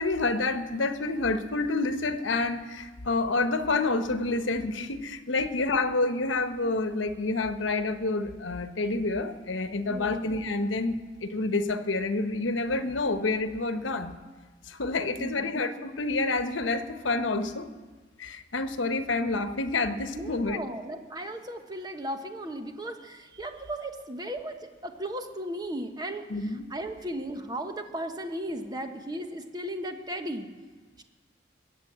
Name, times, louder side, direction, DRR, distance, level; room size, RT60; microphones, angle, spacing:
voice 1, 0.0-14.1 14.7-17.7 18.2-20.6 26.3-26.7, left 3 dB, 85° left, 9 dB, 1.0 m, -28 dB
voice 2, 9.9-10.2 15.2-15.5 20.1-30.5 31.0-31.1, right 1 dB, 20° right, 6 dB, 1.1 m, -36 dB
21.0 x 8.3 x 7.5 m, 1.3 s
head